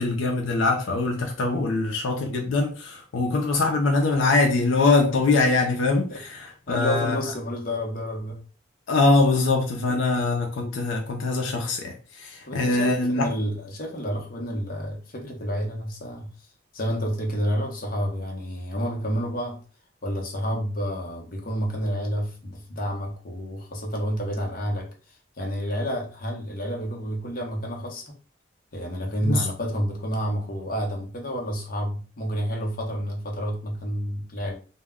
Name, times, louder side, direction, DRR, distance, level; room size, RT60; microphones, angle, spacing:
voice 1, 0.0-7.2 8.9-13.3 29.2-29.5, left 3 dB, 80° left, 0.5 m, -23 dB
voice 2, 6.7-8.4 9.9-10.0 12.5-16.3 16.7-19.6 20.0-28.2 28.7-34.5, equal, 45° left, 0.7 m, -29 dB
2.1 x 2.1 x 3.5 m
head